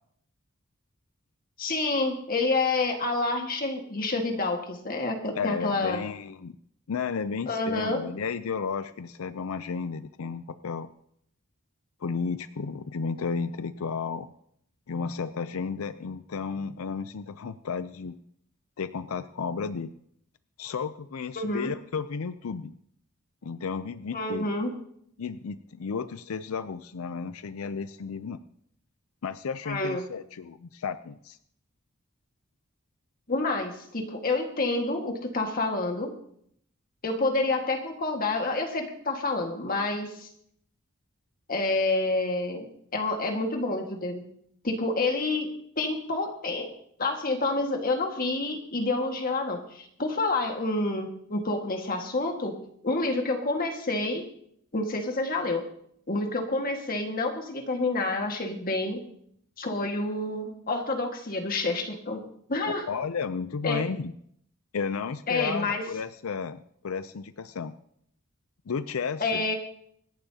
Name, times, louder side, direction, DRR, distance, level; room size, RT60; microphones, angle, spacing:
voice 1, 1.6-6.0 7.5-8.0 21.4-21.7 24.1-24.8 29.7-30.0 33.3-36.1 37.0-40.3 41.5-44.2 44.6-46.7 47.0-52.6 52.8-54.3 54.7-55.6 56.1-59.0 59.6-62.2 62.5-62.8 63.6-63.8 65.3-65.8 69.2-69.5, left 2 dB, 45° left, 3 dB, 1.8 m, -28 dB
voice 2, 5.4-6.6 6.9-10.9 12.0-14.3 14.9-18.2 18.8-19.9 20.6-22.7 23.4-24.5 25.2-28.4 29.2-31.4 62.9-64.1 64.7-67.7 68.7-69.5, left 5 dB, 90° left, 13 dB, 0.5 m, -33 dB
25.5 x 11.5 x 2.8 m, 0.68 s
head